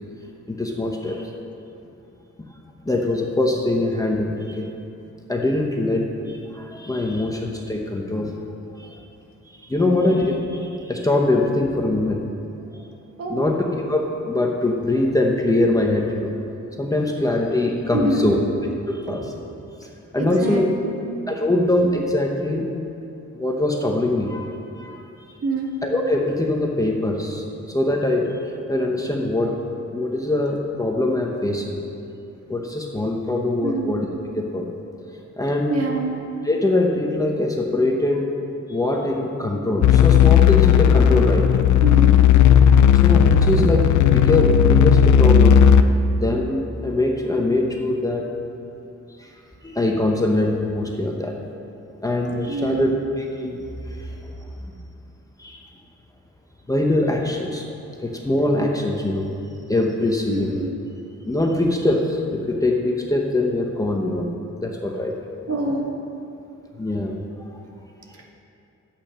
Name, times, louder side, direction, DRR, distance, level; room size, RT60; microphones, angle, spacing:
voice 1, 0.5-1.3 2.9-4.7 5.3-8.3 8.7-9.0 9.5-12.2 13.3-13.6 13.9-16.3 16.8-18.4 18.9-19.3 19.8-20.7 21.3-22.7 23.3-25.0 25.8-29.6 29.9-31.8 32.5-34.1 34.3-34.8 35.4-35.8 36.4-38.3 38.7-41.5 43.0-45.6 46.2-48.3 49.2-49.3 49.6-51.4 52.0-53.6 53.9-54.3 55.4-55.6 56.7-57.6 58.0-59.3 59.7-60.7 61.2-64.3 64.6-65.1 66.8-67.2 67.5-67.6, left 2 dB, 10° left, 0 dB, 0.8 m, -23 dB
voice 2, 9.8-10.1 13.2-13.5 17.9-18.4 19.1-19.2 20.2-21.0 25.4-25.7 33.6-33.9 35.7-36.2 41.8-42.1 52.5-52.9 60.3-60.7 65.5-65.9, right 2 dB, 55° right, 0 dB, 1.7 m, -26 dB
sound 1, 39.8-45.8, left 8 dB, 75° left, 0.6 m, -14 dB
12.0 x 8.6 x 5.7 m, 2.8 s
wide cardioid pair, 175°, 29 cm